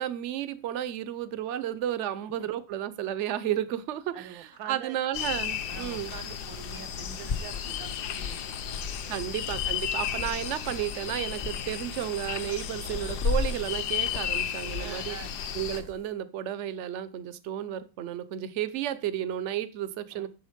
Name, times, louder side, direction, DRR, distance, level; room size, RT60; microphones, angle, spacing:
voice 1, 0.0-6.1 9.1-15.2 15.5-20.3, right 11 dB, 60° right, 15 dB, 0.7 m, -32 dB
voice 2, 2.2-2.5 4.1-5.0 5.7-9.2 14.8-15.3 20.1-20.3, right 9 dB, 80° right, 13 dB, 1.7 m, -45 dB
sound 1, 4.5-4.6 6.4-6.5 6.8-10.4 10.7-11.0 11.4-11.6 12.1-16.0, left 4 dB, 45° left, 0.9 m, -36 dB
sound 2, 5.1-15.8, left 9 dB, 65° left, 1.3 m, -34 dB
9.2 x 7.2 x 5.1 m, 0.33 s
omnidirectional pair, 2.1 m